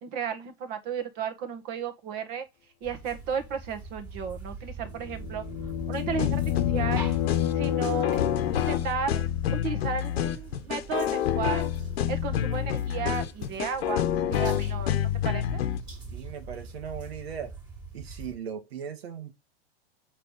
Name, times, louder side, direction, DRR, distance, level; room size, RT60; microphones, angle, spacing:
voice 1, 0.0-2.5 2.8-5.4 5.9-7.1 7.5-8.2 8.5-9.2 9.5-11.7 12.1-15.6, right 7 dB, 30° right, 1.5 m, -34 dB
sound 1, 2.8-18.4, right 4 dB, 10° right, 2.1 m, -44 dB
sound 2, 4.9-8.8, left 12 dB, 35° left, 1.0 m, -30 dB
sound 3, 6.1-15.8, left 10 dB, 75° left, 1.3 m, -28 dB
voice 2, 16.1-17.5 17.9-19.3, right 8 dB, 75° right, 2.0 m, -38 dB
8.1 x 5.1 x 4.0 m
supercardioid pair, 165°, 31 cm